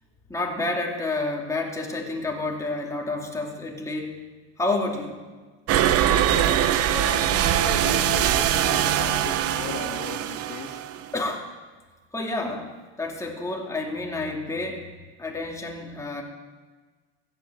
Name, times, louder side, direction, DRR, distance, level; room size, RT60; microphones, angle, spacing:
voice 1, 0.3-4.2 4.6-5.2 11.1-11.5 12.1-12.7 13.0-14.8 15.2-16.2, left 2 dB, 10° left, 0 dB, 2.3 m, -29 dB
sound 1, 5.7-11.2, right 11 dB, 45° right, 0.9 m, -22 dB
voice 2, 6.0-10.8, left 7 dB, 60° left, 3 dB, 2.4 m, -36 dB
15.0 x 7.9 x 7.8 m, 1.4 s
supercardioid pair, 110°, 32 cm